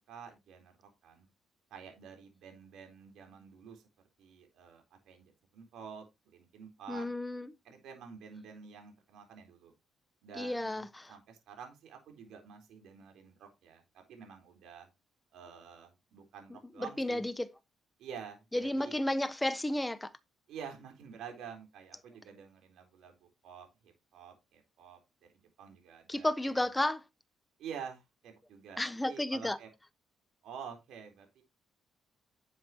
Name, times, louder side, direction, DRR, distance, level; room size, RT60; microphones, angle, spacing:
voice 1, 0.1-1.3 1.7-3.8 4.2-7.1 7.6-9.7 10.2-14.9 15.3-17.3 18.0-19.0 20.5-26.3 26.6-26.7 27.6-29.7 30.4-31.4, right 7 dB, 80° right, 4.0 m, -49 dB
voice 2, 6.9-7.5 10.4-11.1 16.8-17.5 18.5-20.1 26.1-27.0 28.8-29.6, left 1 dB, 10° left, 1.2 m, -32 dB
11.5 x 7.8 x 2.9 m
cardioid pair, 90°, 0 cm